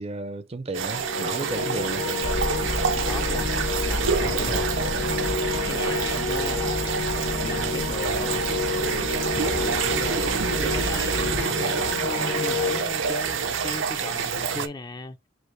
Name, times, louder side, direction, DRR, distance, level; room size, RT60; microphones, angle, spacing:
voice 1, 0.0-2.1, right 2 dB, 35° right, 0.5 m, -33 dB
sound 1, 0.7-14.7, right 6 dB, 80° right, 0.6 m, -27 dB
sound 2, 0.9-12.8, left 4 dB, 65° left, 0.9 m, -30 dB
Marble Arch - Girl riding a horse, 2.2-11.5, left 1 dB, 80° left, 1.6 m, -33 dB
voice 2, 3.0-3.5 3.9-4.7 5.4-8.8 9.4-15.2, left 2 dB, 20° left, 0.4 m, -37 dB
5.1 x 2.0 x 4.4 m
head